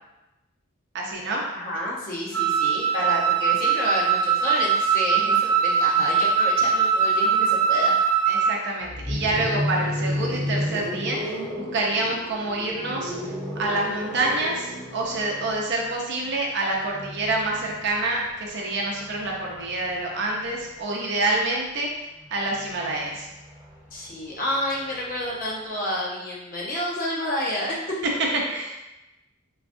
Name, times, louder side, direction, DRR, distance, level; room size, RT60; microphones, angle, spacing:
voice 1, 0.9-1.4 8.3-13.1 13.6-21.9 22.3-23.3 28.5-28.7, right 2 dB, 55° right, -2 dB, 0.6 m, -27 dB
voice 2, 1.5-7.9 23.9-28.0, left 1 dB, 40° left, -5 dB, 0.8 m, -29 dB
Wind instrument woodwind instrument, 2.3-8.6, right 6 dB, 10° left, 0.4 m, -21 dB
sound 1, 8.8-20.8 22.0-25.6, equal, 10° right, 0.8 m, -34 dB
3.8 x 2.3 x 2.5 m, 0.98 s
head